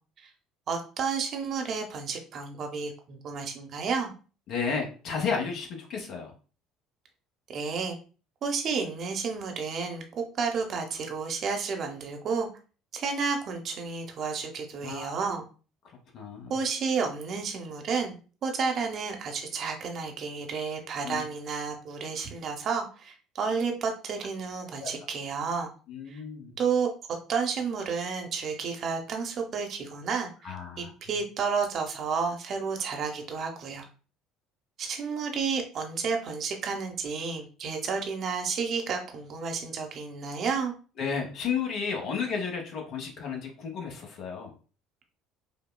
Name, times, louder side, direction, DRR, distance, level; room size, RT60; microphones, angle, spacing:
voice 1, 0.7-4.1 7.5-8.0 8.4-12.5 12.9-15.5 16.5-25.7 26.1-26.2 26.6-26.9 27.3-33.9 34.8-40.7, right 5 dB, 45° right, 3 dB, 0.7 m, -31 dB
voice 2, 4.5-6.3 14.8-15.3 16.1-16.5 21.0-21.2 24.8-24.9 25.9-26.5 30.4-30.9 41.0-44.5, left 6 dB, 55° left, 2 dB, 1.0 m, -33 dB
5.1 x 2.2 x 2.2 m, 0.36 s
figure-of-eight pair, 60°, 0 cm